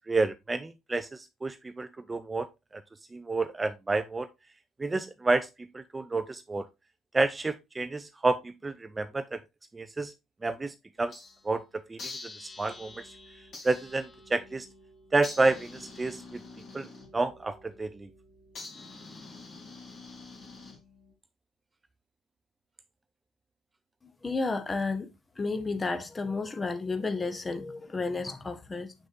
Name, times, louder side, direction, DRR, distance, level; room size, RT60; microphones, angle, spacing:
voice 1, 0.1-2.5 2.7-2.8 3.1-4.3 4.8-6.7 7.1-9.4 9.7-10.1 10.4-12.1 12.4-13.0 13.6-14.7 15.1-16.4 16.7-16.9 17.1-18.1, right 3 dB, 20° right, 0.4 m, -30 dB
sound 1, 11.0-11.5 12.0-21.1, left 3 dB, 45° left, 2.8 m, -47 dB
voice 2, 24.0-25.1 25.4-28.9, left 3 dB, 20° left, 1.1 m, -32 dB
6.6 x 6.3 x 2.5 m
figure-of-eight pair, 55°, 0 cm